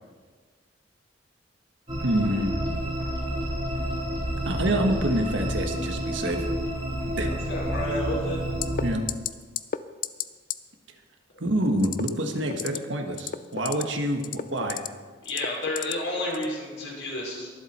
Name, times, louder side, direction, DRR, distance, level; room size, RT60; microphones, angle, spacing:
sound 1, 1.9-8.9, equal, 25° right, 3.5 m, -29 dB
voice 1, 2.0-2.6 4.4-6.5 7.2-7.3 8.8-9.0 11.4-14.8, right 1 dB, 75° right, 4 dB, 1.5 m, -27 dB
voice 2, 7.5-8.4 15.2-17.5, left 1 dB, 80° left, -4 dB, 4.5 m, -31 dB
sound 2, 8.6-8.8 9.1-9.3 9.6-9.8 10.0-10.2 10.5-10.6 11.8-12.1 12.5-12.8 13.1-13.8 14.2-14.9 15.3-15.9 16.3-16.5, left 9 dB, 45° left, 0.4 m, -30 dB
22.0 x 7.7 x 4.3 m, 1.5 s
head